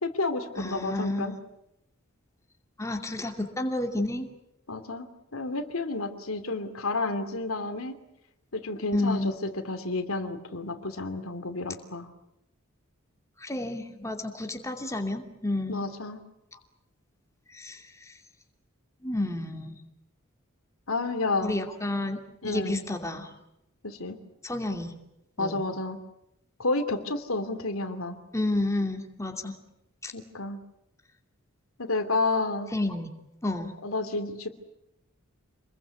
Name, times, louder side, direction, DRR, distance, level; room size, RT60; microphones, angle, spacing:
voice 1, 0.0-1.4 4.7-5.1 5.3-8.0 8.5-12.1 15.7-16.2 20.9-21.5 22.4-22.8 23.8-24.2 25.4-26.0 26.6-28.2 30.1-30.6 31.8-32.7 33.8-34.5, left 2 dB, 80° left, 8 dB, 2.8 m, -30 dB
voice 2, 0.6-1.4 2.8-4.3 8.9-9.3 13.4-15.8 17.5-17.8 19.0-19.8 21.4-23.3 24.4-24.9 25.4-25.6 28.3-29.6 30.0-30.1 32.7-33.1 33.4-33.7, left 1 dB, 15° left, 4 dB, 2.7 m, -30 dB
28.0 x 21.5 x 8.4 m, 0.84 s
head